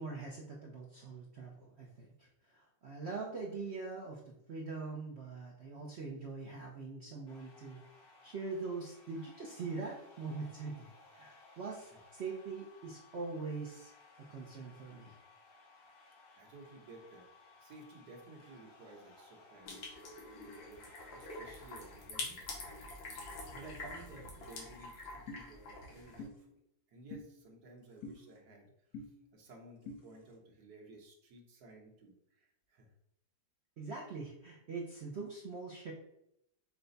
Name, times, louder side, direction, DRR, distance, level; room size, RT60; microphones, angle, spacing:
voice 1, 0.0-7.8 8.2-13.9 14.3-15.1 33.8-35.9, right 4 dB, 80° right, -2 dB, 0.6 m, -43 dB
sound 1, 7.3-22.1, left 3 dB, 45° left, 0.9 m, -60 dB
voice 2, 16.4-17.3 17.6-22.7 23.5-26.5 26.9-28.7 29.3-32.9, right 2 dB, 60° right, 0 dB, 1.4 m, -55 dB
sound 2, 19.7-26.3, left 2 dB, 85° left, 1.8 m, -46 dB
sound 3, 25.3-25.4 26.2-26.3 27.1-27.3 28.0-28.2 28.9-29.1 29.9-30.0, left 3 dB, 65° left, 1.3 m, -44 dB
5.9 x 2.2 x 3.9 m, 0.80 s
omnidirectional pair, 2.0 m